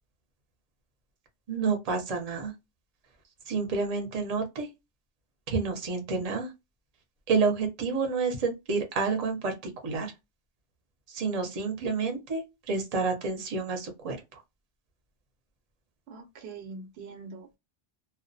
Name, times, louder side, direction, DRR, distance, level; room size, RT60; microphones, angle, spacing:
voice 1, 1.5-2.5 3.5-4.7 5.5-6.5 7.3-9.5 9.8-10.1 11.1-14.2, right 4 dB, 45° right, 0.7 m, -29 dB
voice 2, 16.1-17.6, right 4 dB, 80° right, 0.9 m, -43 dB
2.2 x 2.1 x 2.6 m
omnidirectional pair, 1.0 m